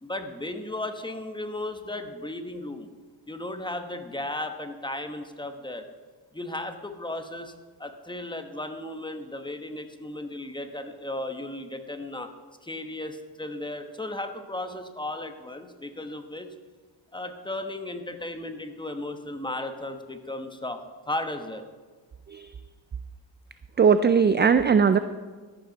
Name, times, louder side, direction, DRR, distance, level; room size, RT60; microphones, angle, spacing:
voice 1, 0.0-2.9 3.3-5.8 6.3-7.5 7.8-12.3 12.6-16.5 17.1-20.8 21.1-21.6, left 1 dB, 10° left, 7 dB, 1.1 m, -35 dB
voice 2, 23.8-25.0, right 6 dB, 25° right, 11 dB, 0.3 m, -19 dB
13.5 x 11.0 x 4.0 m, 1.4 s
cardioid pair, 100°, 44 cm